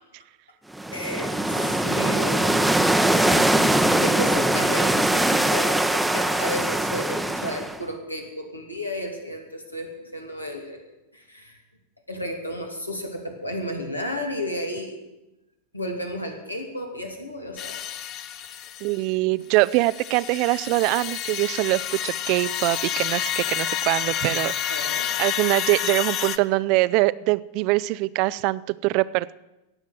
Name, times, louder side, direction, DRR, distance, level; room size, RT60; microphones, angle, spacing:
sound 1, 0.7-7.8, right 1 dB, 5° right, 0.8 m, -22 dB
voice 1, 0.9-2.6 4.0-10.8 11.1-11.6 12.1-15.0 15.7-17.8 24.7-25.2, equal, 85° left, 3 dB, 2.7 m, -33 dB
sound 2, 17.6-19.0 19.5-26.4, left 10 dB, 35° left, 0.8 m, -29 dB
voice 2, 18.8-24.9 25.2-29.4, right 20 dB, 45° right, 18 dB, 0.5 m, -23 dB
18.0 x 7.4 x 9.1 m, 0.98 s
figure-of-eight pair, 90°, 0 cm